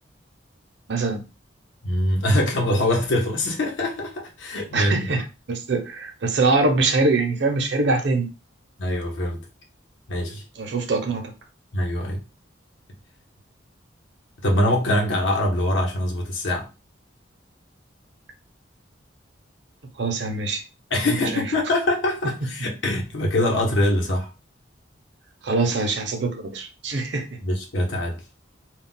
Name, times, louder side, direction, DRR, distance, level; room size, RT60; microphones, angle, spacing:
voice 1, 0.9-1.3 4.7-8.3 10.6-11.3 20.0-20.6 21.1-21.4 25.4-27.3, right 3 dB, 65° right, 0.6 m, -23 dB
voice 2, 1.8-5.0 8.8-9.5 10.1-10.4 11.7-12.2 14.4-16.7 20.9-24.3 27.4-28.2, left 1 dB, 80° left, 0.8 m, -23 dB
2.3 x 2.1 x 3.7 m
head